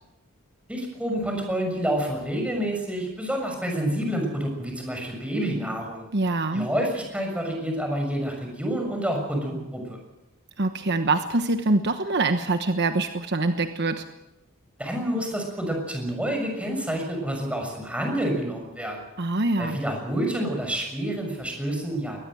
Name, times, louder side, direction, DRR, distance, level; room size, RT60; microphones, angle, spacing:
voice 1, 0.7-6.1 6.5-10.0 14.8-19.1 19.6-22.2, right 1 dB, 5° right, 2 dB, 6.5 m, -28 dB
voice 2, 6.1-6.7 10.6-14.0 19.2-19.8, right 2 dB, 55° right, 8 dB, 1.2 m, -24 dB
22.0 x 19.5 x 7.9 m, 0.96 s
head